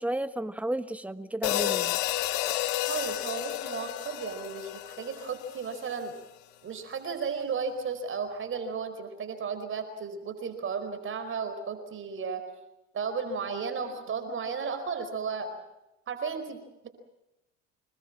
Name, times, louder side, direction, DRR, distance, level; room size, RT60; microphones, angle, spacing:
voice 1, 0.0-2.0 2.7-2.8, right 1 dB, 5° right, 11 dB, 1.5 m, -33 dB
sound 1, 1.4-5.8, left 15 dB, 80° left, 1.5 m, -31 dB
voice 2, 2.9-6.2 6.6-12.4 12.9-15.6 16.1-16.9, right 5 dB, 40° right, 8 dB, 4.7 m, -34 dB
26.5 x 21.0 x 7.5 m, 0.93 s
supercardioid pair, 90°, 32 cm